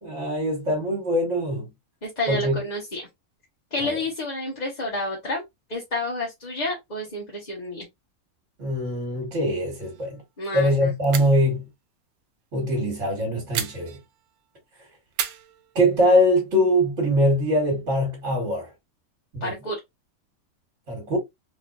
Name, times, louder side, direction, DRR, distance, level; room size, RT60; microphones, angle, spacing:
voice 1, 0.0-1.7 2.3-2.6 3.8-4.0 8.6-10.2 10.5-11.7 12.5-14.0 15.7-18.7 19.3-19.5 20.9-21.2, equal, 55° right, 1.7 m, -22 dB
voice 2, 2.0-3.0 3.7-5.4 5.7-7.9 10.4-10.9 19.4-19.8, left 2 dB, 35° left, 1.1 m, -29 dB
sound 1, 9.8-10.2 10.4-10.5 11.0-11.5 13.5-14.4 15.1-16.3, right 10 dB, 85° right, 1.1 m, -34 dB
3.7 x 3.1 x 2.4 m
omnidirectional pair, 1.5 m